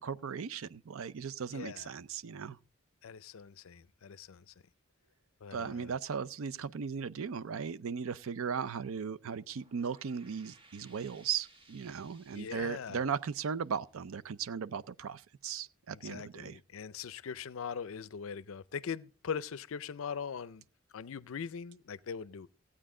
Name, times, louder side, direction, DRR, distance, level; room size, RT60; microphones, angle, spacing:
voice 1, 0.0-2.6 5.5-16.6, right 6 dB, 70° right, 0.5 m, -37 dB
voice 2, 1.5-1.9 3.0-4.5 5.4-5.9 12.3-13.0 16.0-20.6 20.9-22.5, left 6 dB, 70° left, 0.5 m, -41 dB
sound 1, 9.4-14.6, right 2 dB, 25° right, 1.3 m, -63 dB
16.0 x 8.8 x 3.7 m
head